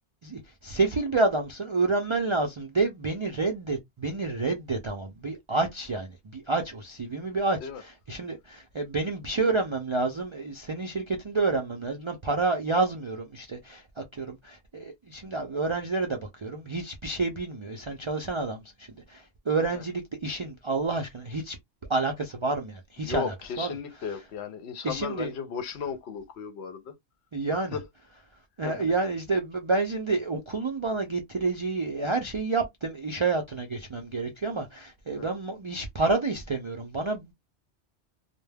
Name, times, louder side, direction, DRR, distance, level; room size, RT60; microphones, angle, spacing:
voice 1, 0.2-21.6 21.9-23.7 24.8-25.3 27.3-27.7 28.6-37.3, right 3 dB, 50° right, 0.3 m, -29 dB
voice 2, 23.0-26.9 27.5-27.8 28.6-28.9 35.1-35.3, left 7 dB, 75° left, 0.8 m, -35 dB
2.2 x 2.1 x 3.3 m
omnidirectional pair, 1.2 m